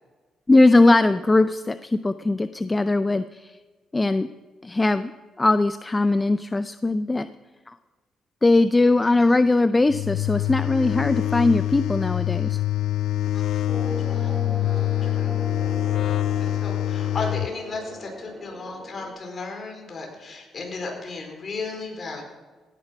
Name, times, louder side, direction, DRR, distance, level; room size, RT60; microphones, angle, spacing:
voice 1, 0.5-3.6 3.9-4.3 4.6-5.1 5.4-7.3 7.7-7.8 8.4-12.6, left 2 dB, 20° left, 12 dB, 0.4 m, -20 dB
voice 2, 9.0-9.4 13.3-14.3 14.8-15.4 16.4-22.2, left 3 dB, 40° left, 2 dB, 4.4 m, -35 dB
sound 1, 9.9-17.5, left 14 dB, 80° left, 0.4 m, -25 dB
sound 2, 13.7-19.1, left 1 dB, ahead, 5.2 m, -37 dB
17.0 x 9.7 x 5.7 m, 1.3 s
cardioid pair, 90°, 0 cm